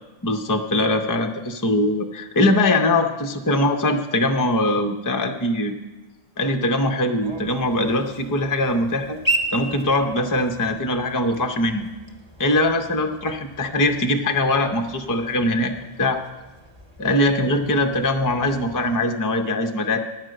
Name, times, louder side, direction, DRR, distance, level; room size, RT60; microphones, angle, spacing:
voice 1, 0.2-5.7 6.4-9.2 9.5-11.9 12.4-15.7 16.0-16.2 17.0-20.0, left 1 dB, 25° left, 5 dB, 0.6 m, -21 dB
sound 1, 7.2-19.0, right 1 dB, 25° right, 1.0 m, -35 dB
10.5 x 6.2 x 7.7 m, 1.1 s
omnidirectional pair, 1.1 m